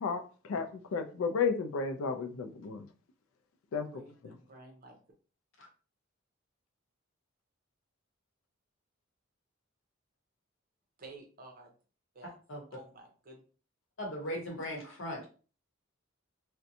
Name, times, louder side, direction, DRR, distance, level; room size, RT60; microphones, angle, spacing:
voice 1, 0.0-2.9 3.7-3.9 4.2-4.3, left 5 dB, 85° left, 0.4 m, -33 dB
voice 2, 3.9-5.0 11.0-11.7 12.1-12.3 12.7-13.4, right 2 dB, 45° right, 0.7 m, -52 dB
voice 3, 14.0-15.3, equal, 65° left, 0.9 m, -38 dB
2.5 x 2.1 x 2.7 m
head